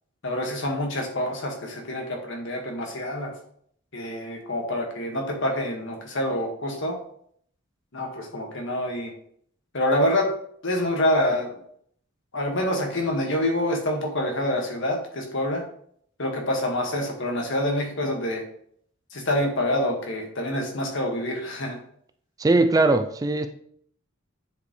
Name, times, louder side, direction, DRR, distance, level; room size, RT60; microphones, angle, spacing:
voice 1, 0.2-3.3 3.9-7.0 7.9-9.1 9.7-10.3 10.6-11.6 12.3-15.6 16.2-18.4 19.1-21.8, left 1 dB, 65° left, 1.7 m, -26 dB
voice 2, 22.4-23.5, right 2 dB, 15° right, 0.3 m, -20 dB
9.6 x 5.1 x 3.2 m
head